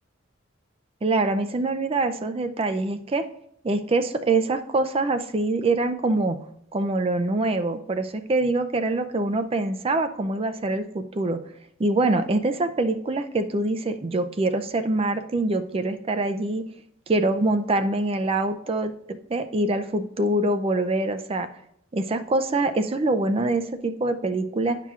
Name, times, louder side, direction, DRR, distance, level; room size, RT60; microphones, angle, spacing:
voice 1, 1.0-3.2 3.6-6.4 6.7-11.4 11.8-16.6 17.1-21.5 21.9-24.8, right 2 dB, 30° right, 9 dB, 0.4 m, -24 dB
10.5 x 5.7 x 2.4 m, 0.74 s
head